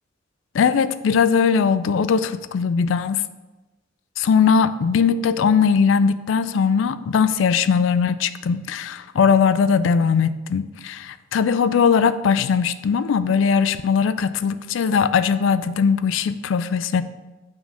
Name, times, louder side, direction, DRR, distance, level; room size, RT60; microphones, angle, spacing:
voice 1, 0.5-3.2 4.2-17.0, left 6 dB, 75° left, 0.3 m, -19 dB
6.0 x 3.9 x 5.4 m
head